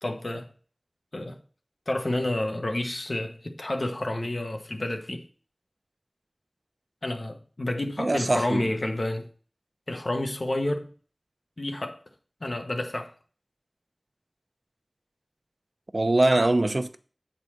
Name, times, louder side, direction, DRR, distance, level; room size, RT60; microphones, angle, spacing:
voice 1, 0.0-0.5 1.1-1.4 1.9-5.2 7.0-9.3 9.9-10.9 11.6-12.0 12.4-13.1, left 1 dB, 80° left, 1.2 m, -30 dB
voice 2, 8.0-8.7 15.9-17.0, right 2 dB, 75° right, 0.6 m, -23 dB
8.5 x 4.0 x 6.4 m
wide cardioid pair, 40°, 0 cm